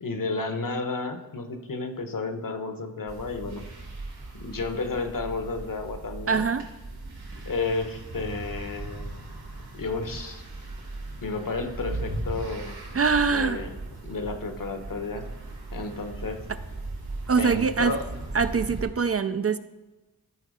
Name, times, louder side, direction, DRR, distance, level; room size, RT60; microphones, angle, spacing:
voice 1, 0.0-3.7 4.3-6.5 7.4-9.2 9.7-10.4 11.2-12.8 13.3-13.7 14.0-15.3 15.7-16.4 17.3-18.1, left 3 dB, 55° left, 7 dB, 1.1 m, -32 dB
sound 1, 3.1-18.9, right 2 dB, 80° right, 2.4 m, -38 dB
voice 2, 6.3-6.7 12.9-13.6 17.3-18.0 18.3-19.6, right 5 dB, 40° right, 11 dB, 0.4 m, -23 dB
13.5 x 4.5 x 4.9 m, 1.1 s
cardioid pair, 60°, 38 cm